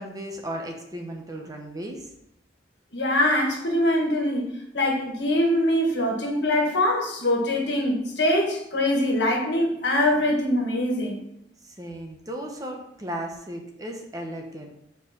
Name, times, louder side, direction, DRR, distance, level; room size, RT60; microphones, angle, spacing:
voice 1, 0.0-2.1 11.6-14.7, right 1 dB, 20° right, 2 dB, 0.9 m, -35 dB
voice 2, 2.9-4.5 4.7-11.2, left 1 dB, 70° left, 1 dB, 1.7 m, -23 dB
5.5 x 4.7 x 5.9 m, 0.79 s
head